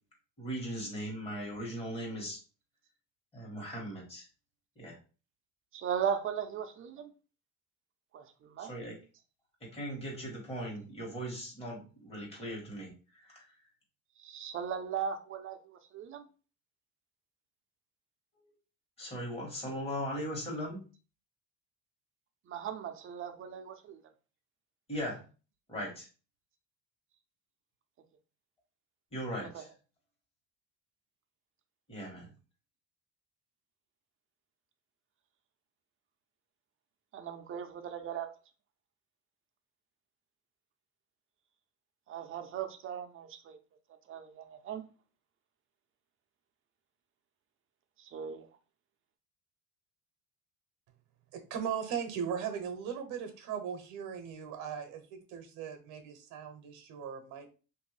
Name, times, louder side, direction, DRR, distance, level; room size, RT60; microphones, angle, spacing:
voice 1, 0.4-2.4 3.3-4.3 4.8-5.0 8.6-9.0 9.6-13.5 18.3-18.5 19.0-20.8 24.9-25.2 25.7-26.1 29.1-29.7 31.9-32.3, equal, 20° left, 1.4 m, -39 dB
voice 2, 5.7-7.1 8.1-8.7 14.2-16.3 22.5-24.0 29.4-29.6 37.1-38.3 42.1-43.6 44.1-44.8 48.0-48.5, right 8 dB, 40° right, 0.6 m, -38 dB
voice 3, 51.3-57.5, right 7 dB, 70° right, 0.9 m, -38 dB
3.1 x 2.6 x 3.2 m
cardioid pair, 125°, 32 cm